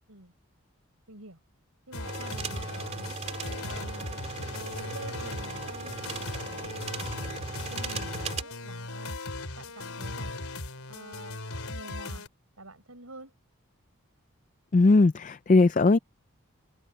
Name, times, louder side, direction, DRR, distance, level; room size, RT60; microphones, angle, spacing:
voice 1, 1.1-1.4 1.9-3.2 3.8-4.3 4.7-6.8 7.2-9.2 9.6-10.4 10.9-11.4 11.7-12.3 12.6-13.3, right 2 dB, 75° right, 7.2 m, -49 dB
sound 1, 1.9-12.3, left 2 dB, 75° left, 3.7 m, -38 dB
sound 2, 2.0-8.4, right 3 dB, 30° right, 3.3 m, -37 dB
voice 2, 14.7-16.0, left 3 dB, 35° left, 0.4 m, -19 dB
head